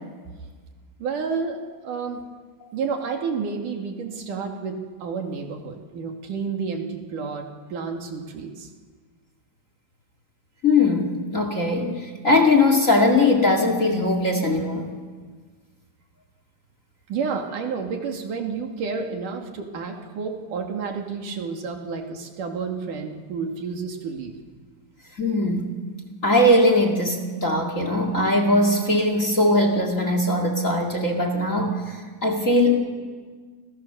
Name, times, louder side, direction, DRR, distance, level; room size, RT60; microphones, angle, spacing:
voice 1, 1.0-2.2 2.7-8.7 17.1-24.4, right 5 dB, 50° right, 3 dB, 3.4 m, -30 dB
voice 2, 10.6-14.9 25.2-25.7 26.2-32.8, left 2 dB, 35° left, 5 dB, 1.2 m, -20 dB
29.5 x 28.0 x 7.0 m, 1.5 s
omnidirectional pair, 5.7 m